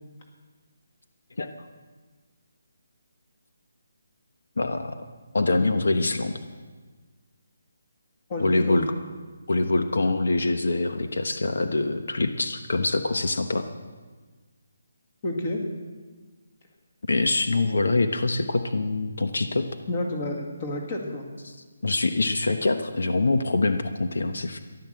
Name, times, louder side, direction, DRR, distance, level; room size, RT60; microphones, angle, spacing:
voice 1, 4.6-5.0 5.3-6.4 8.4-8.9 9.5-13.6 17.1-19.7 21.5-21.6 21.8-24.6, left 2 dB, 70° left, 7 dB, 1.1 m, -24 dB
voice 2, 8.3-8.9 15.2-15.6 19.9-21.3, left 1 dB, 25° left, 2 dB, 1.9 m, -30 dB
14.5 x 11.5 x 7.7 m, 1.4 s
hypercardioid pair, 175°, 0 cm